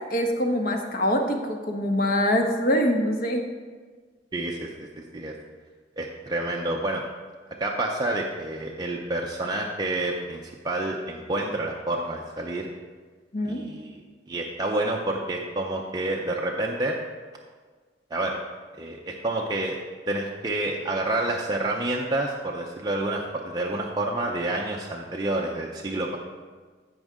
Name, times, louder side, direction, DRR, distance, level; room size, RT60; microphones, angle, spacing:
voice 1, 0.1-3.4 13.3-13.6, equal, 55° left, 3 dB, 1.2 m, -24 dB
voice 2, 4.3-5.3 6.0-7.0 7.6-12.7 13.4-14.0 14.3-17.0 18.1-18.4 18.8-19.8 20.1-26.2, right 2 dB, 25° right, -1 dB, 0.6 m, -28 dB
15.0 x 5.4 x 3.7 m, 1.5 s
head